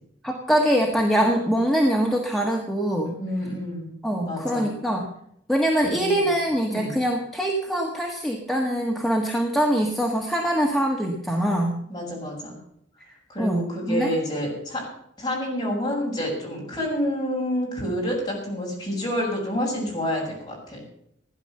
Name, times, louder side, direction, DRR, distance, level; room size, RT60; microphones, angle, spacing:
voice 1, 0.2-3.1 4.0-5.1 5.5-11.8 13.0-13.6 13.9-14.1, equal, ahead, 0 dB, 1.7 m, -23 dB
voice 2, 3.2-3.9 4.2-4.7 5.8-6.3 6.7-6.9 11.9-12.6 13.3-14.9 15.2-20.8, equal, 20° left, -3 dB, 7.1 m, -28 dB
16.0 x 10.5 x 6.7 m, 0.72 s
head